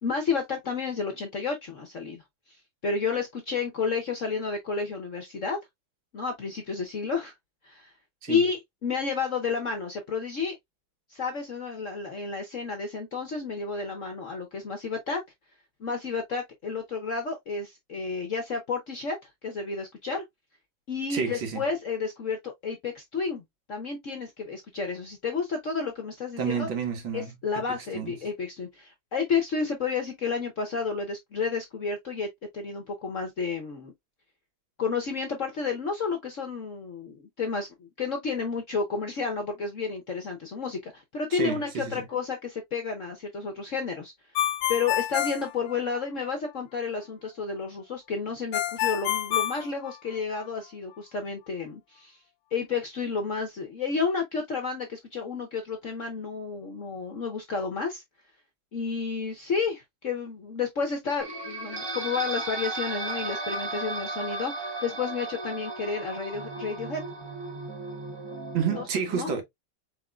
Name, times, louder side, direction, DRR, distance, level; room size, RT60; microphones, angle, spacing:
voice 1, 0.0-2.2 2.8-5.6 6.1-7.3 7.6-7.9 8.3-10.6 11.1-15.2 15.8-19.2 19.4-20.2 20.9-23.4 23.7-26.7 27.1-32.3 32.5-33.9 34.8-44.1 44.7-52.2 52.5-58.0 58.7-67.0 68.7-68.8 69.1-69.3, left 5 dB, 55° left, 0.9 m, -31 dB
voice 2, 21.1-21.6 26.4-27.3 27.9-28.1 41.3-42.0 68.5-69.4, right 7 dB, 70° right, 2.1 m, -29 dB
Ringtone, 44.3-46.3 48.5-50.4, left 12 dB, 80° left, 1.4 m, -28 dB
sound 1, 61.2-68.8, right 2 dB, 25° right, 0.6 m, -35 dB
4.6 x 4.4 x 2.3 m
omnidirectional pair, 2.3 m